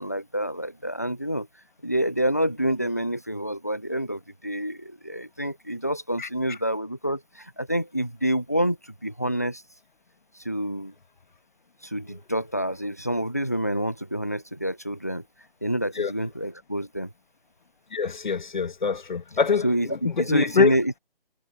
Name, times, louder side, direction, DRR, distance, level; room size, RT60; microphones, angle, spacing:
voice 1, 0.0-1.5 1.8-9.6 10.3-10.9 11.8-15.2 15.6-17.1 19.6-21.0, right 1 dB, 15° left, 0.5 m, -27 dB
voice 2, 17.9-19.7 20.0-20.7, left 5 dB, 55° left, 1.3 m, -24 dB
figure-of-eight pair, 165°, 29 cm